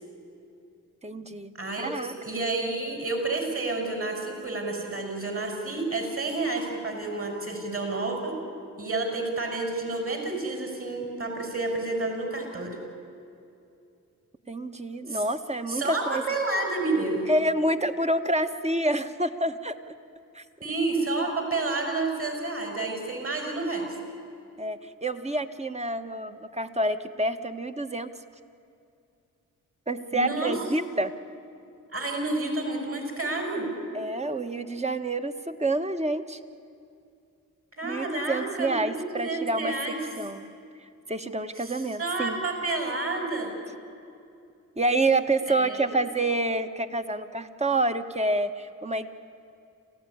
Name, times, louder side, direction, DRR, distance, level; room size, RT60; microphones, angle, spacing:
voice 1, 1.0-1.5 1.8-2.2 14.5-16.2 17.3-19.8 20.3-20.4 24.6-28.1 29.9-31.1 33.9-36.4 37.8-39.8 40.1-40.5 41.1-42.4 44.8-49.1, right 2 dB, 20° right, 8 dB, 1.5 m, -28 dB
voice 2, 1.6-8.4 8.8-12.8 15.1-15.2 15.7-17.3 20.6-24.0 30.1-30.5 31.9-33.7 37.8-40.0 41.6-43.5 45.5-46.0, right 2 dB, 40° right, 2 dB, 6.1 m, -30 dB
27.5 x 15.5 x 10.0 m, 2.5 s
cardioid pair, 55°, 35 cm